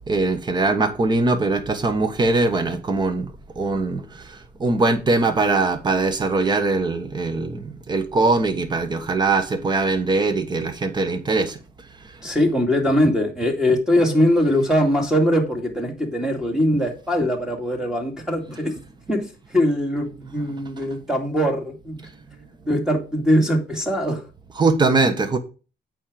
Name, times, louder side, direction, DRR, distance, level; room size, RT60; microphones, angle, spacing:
voice 1, 0.1-11.6 24.6-25.4, right 3 dB, 25° right, 1.4 m, -21 dB
voice 2, 12.2-18.8 19.1-19.2 19.5-22.1 22.7-24.2, equal, 5° right, 2.5 m, -21 dB
8.6 x 5.3 x 5.0 m
cardioid pair, 110°, 17 cm